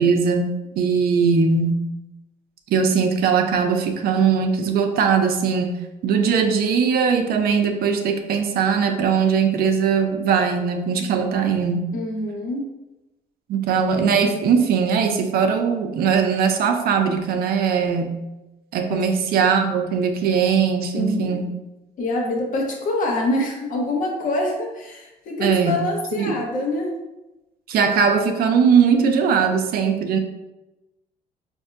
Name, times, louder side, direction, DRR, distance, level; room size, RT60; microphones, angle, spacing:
voice 1, 0.0-1.8 2.7-5.8 6.0-11.8 13.5-18.2 18.7-21.4 25.4-25.8 26.2-26.3 27.7-30.2, right 6 dB, 65° right, 5 dB, 0.5 m, -20 dB
voice 2, 11.9-12.7 18.8-19.0 20.9-21.5 22.0-26.9, left 1 dB, 50° left, 0 dB, 0.9 m, -25 dB
5.3 x 2.6 x 2.5 m, 1.0 s
cardioid pair, 110°, 17 cm